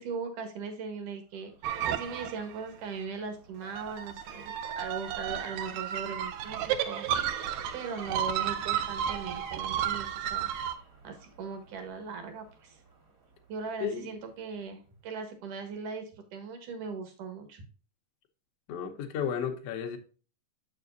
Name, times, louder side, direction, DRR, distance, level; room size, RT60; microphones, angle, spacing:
voice 1, 0.0-1.5 1.8-10.5 11.0-12.8 13.5-17.6, right 5 dB, 70° right, 2.8 m, -39 dB
sound 1, 1.4-14.2 14.6-14.7, right 4 dB, 40° right, 1.3 m, -49 dB
sound 2, 1.6-2.6 3.6-10.7, right 10 dB, 85° right, 1.6 m, -33 dB
voice 2, 13.8-14.2 18.7-20.0, left 8 dB, 70° left, 1.6 m, -33 dB
7.4 x 6.8 x 2.6 m
omnidirectional pair, 3.9 m